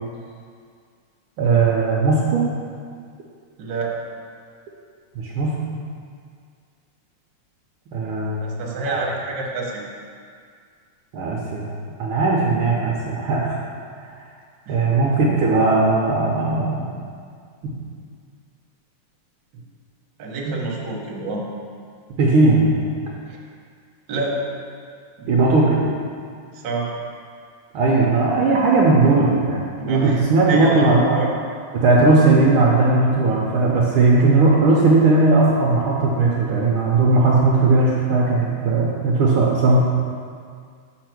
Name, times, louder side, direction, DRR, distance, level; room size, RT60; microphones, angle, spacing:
voice 1, 1.4-2.4 5.1-5.7 7.9-8.4 8.9-9.0 11.1-11.7 12.0-13.6 14.7-16.9 20.4-20.7 22.2-22.8 25.3-25.8 27.7-31.2 31.7-39.8, right 3 dB, 75° right, -3 dB, 1.2 m, -18 dB
voice 2, 3.6-3.9 8.4-9.8 14.7-14.9 20.2-21.5 23.3-23.4 24.1-24.4 25.2-25.3 26.5-26.9 29.8-30.2 30.5-30.9 31.1-31.3, right 3 dB, 55° right, -2 dB, 1.3 m, -27 dB
6.3 x 5.8 x 6.0 m, 2.1 s
omnidirectional pair, 3.3 m